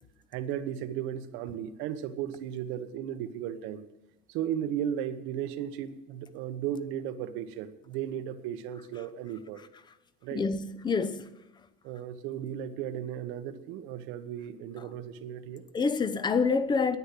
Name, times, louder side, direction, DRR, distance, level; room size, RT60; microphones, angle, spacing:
voice 1, 0.3-3.8 4.3-9.6 10.2-10.4 11.8-15.6, right 10 dB, 75° right, 1.2 m, -35 dB
voice 2, 10.3-11.3 15.7-17.0, left 4 dB, 20° left, 0.8 m, -27 dB
10.0 x 9.6 x 9.7 m
cardioid pair, 140°, 20 cm